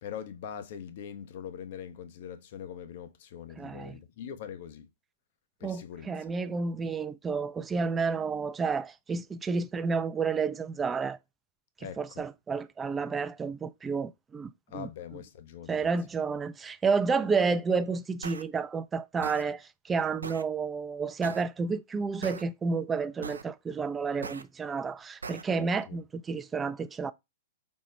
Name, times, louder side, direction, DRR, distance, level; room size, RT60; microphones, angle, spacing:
voice 1, 0.0-4.9 5.6-6.1 11.8-12.2 14.7-15.9 25.5-26.0, left 8 dB, 55° left, 0.6 m, -42 dB
voice 2, 3.6-4.0 5.6-11.2 12.0-14.9 15.7-27.1, right 5 dB, 15° right, 0.3 m, -30 dB
sound 1, 18.2-18.4 19.2-19.4 20.2-20.4 21.2-21.4 22.2-22.4 23.2-23.4 24.2-24.4 25.2-25.4, right 4 dB, 85° right, 0.4 m, -39 dB
5.3 x 2.1 x 4.2 m
hypercardioid pair, 115°, 0 cm